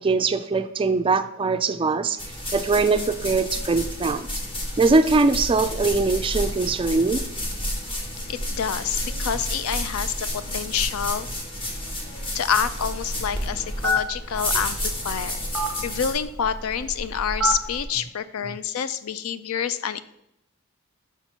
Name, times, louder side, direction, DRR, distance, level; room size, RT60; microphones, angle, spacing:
voice 1, 0.0-2.2 2.5-4.3 4.8-7.2, right 3 dB, 25° right, 10 dB, 0.3 m, -21 dB
sound 1, 2.2-16.1, left 1 dB, 25° left, 1.2 m, -31 dB
voice 2, 8.3-11.3 12.3-20.0, left 8 dB, 75° left, 13 dB, 0.4 m, -28 dB
Telephone, 12.5-17.8, equal, 5° left, 1.1 m, -29 dB
6.0 x 4.4 x 5.5 m, 0.82 s
head